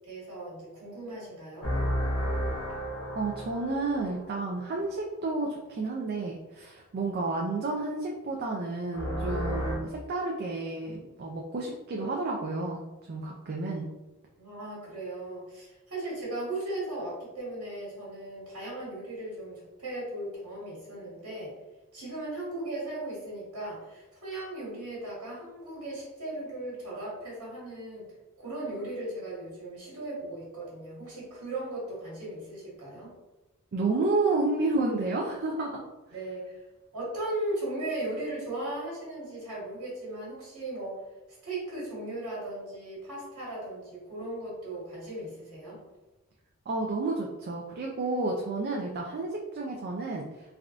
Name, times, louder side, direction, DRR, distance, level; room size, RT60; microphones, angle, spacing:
voice 1, 0.1-1.7 14.4-21.5 21.9-28.1 28.4-33.1 36.1-36.6 36.9-41.0 41.4-45.8, right 1 dB, 85° right, -6 dB, 1.3 m, -37 dB
sound 1, 1.6-4.7 8.9-9.8, equal, 70° left, 0.9 m, -32 dB
voice 2, 3.2-13.9 33.7-35.8 46.7-50.3, right 3 dB, 45° right, -1 dB, 0.3 m, -31 dB
3.5 x 2.3 x 2.4 m, 1.1 s
head